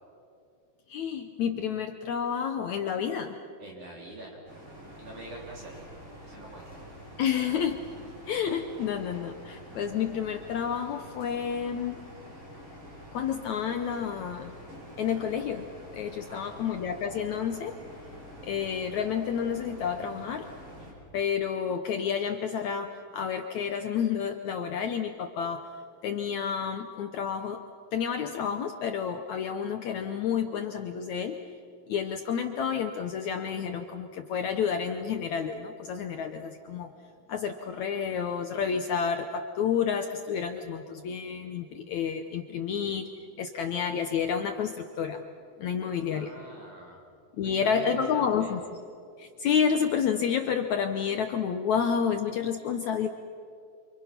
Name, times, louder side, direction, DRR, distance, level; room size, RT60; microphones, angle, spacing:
voice 1, 0.9-3.4 7.2-7.8 8.3-12.0 13.1-14.5 15.0-15.7 15.9-17.8 18.4-20.5 21.1-25.7 26.0-27.6 27.9-31.4 31.9-36.9 37.3-43.1 43.4-45.2 45.6-46.3 47.4-48.6 49.2-53.1, left 7 dB, 75° left, 6 dB, 1.7 m, -30 dB
voice 2, 3.6-4.4 5.0-5.8 6.2-6.7 16.1-16.6 45.8-47.0 47.4-47.8 48.1-48.5, right 1 dB, 50° right, -3 dB, 4.9 m, -45 dB
sound 1, 4.5-20.9, equal, 30° right, 8.0 m, -47 dB
29.5 x 27.0 x 5.9 m, 2.4 s
omnidirectional pair, 4.5 m